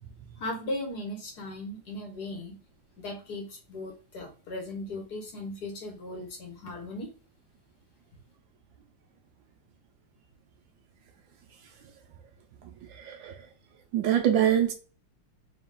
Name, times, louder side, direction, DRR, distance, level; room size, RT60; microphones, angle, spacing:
voice 1, 0.4-2.6 3.0-7.1, left 1 dB, 55° left, 1.3 m, -37 dB
voice 2, 12.9-13.4 13.9-14.7, right 10 dB, 75° right, 1.2 m, -24 dB
4.0 x 2.7 x 3.6 m
omnidirectional pair, 2.3 m